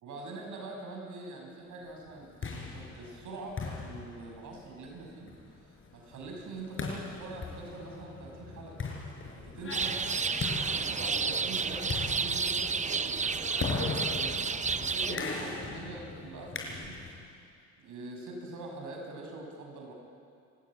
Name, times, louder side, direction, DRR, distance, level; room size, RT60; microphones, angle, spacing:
voice 1, 0.0-5.3 5.6-8.8 9.3-10.0 10.6-17.0 17.8-19.9, right 2 dB, 80° right, 1 dB, 6.5 m, -44 dB
sound 1, 2.1-17.2, left 4 dB, 45° left, 5.6 m, -39 dB
sound 2, 9.7-15.2, right 5 dB, 25° right, 0.7 m, -31 dB
29.5 x 15.0 x 9.0 m, 2.3 s
cardioid pair, 90°, 30 cm